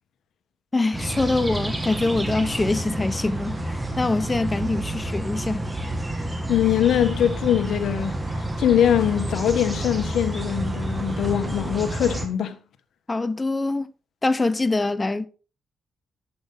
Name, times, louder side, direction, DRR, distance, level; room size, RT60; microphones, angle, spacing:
voice 1, 0.7-5.7 13.1-13.9 14.2-15.3, left 2 dB, 25° left, 1.0 m, -24 dB
sound 1, 0.9-12.3, right 1 dB, 15° right, 2.3 m, -29 dB
voice 2, 6.5-12.6, left 10 dB, 80° left, 1.4 m, -22 dB
11.0 x 8.0 x 4.0 m
cardioid pair, 70°, 0 cm